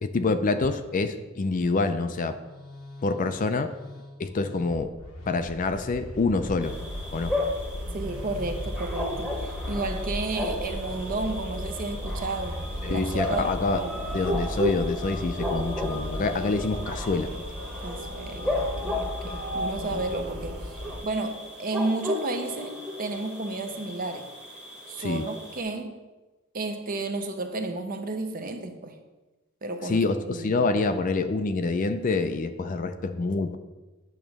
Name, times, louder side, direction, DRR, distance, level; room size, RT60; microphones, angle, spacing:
voice 1, 0.0-2.4 3.0-3.7 4.2-4.9 5.3-6.8 7.1-7.3 12.8-13.8 14.1-17.3 25.0-25.3 29.8-33.6, left 3 dB, 40° left, 0.4 m, -26 dB
Musical instrument, 2.0-13.8, left 1 dB, 85° left, 1.0 m, -45 dB
sound 1, 5.7-21.0, equal, 85° right, 1.8 m, -35 dB
sound 2, 6.6-25.6, left 1 dB, 5° right, 1.0 m, -34 dB
voice 2, 7.9-13.9 17.8-20.7 21.0-24.3 24.9-26.0 26.5-29.0 29.6-30.0 30.3-30.6, right 2 dB, 45° right, 0.7 m, -32 dB
8.8 x 3.0 x 6.3 m
head